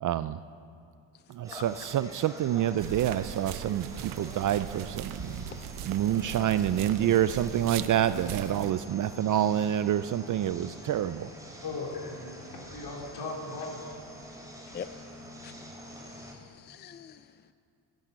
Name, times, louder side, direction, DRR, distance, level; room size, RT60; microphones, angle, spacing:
voice 1, 0.0-0.4 1.4-5.4 5.9-11.3, right 11 dB, 40° right, 13 dB, 0.4 m, -27 dB
sound 1, 1.4-16.3, equal, 5° right, 2.9 m, -45 dB
sound 2, 2.8-8.7, right 13 dB, 80° right, 0.7 m, -40 dB
voice 2, 11.6-12.3 12.6-13.8 14.7-14.8, left 3 dB, 50° left, -2 dB, 4.2 m, -37 dB
voice 3, 16.0-17.5, left 8 dB, 25° left, 11 dB, 0.3 m, -45 dB
15.0 x 10.5 x 7.5 m, 2.5 s
cardioid pair, 110°, 48 cm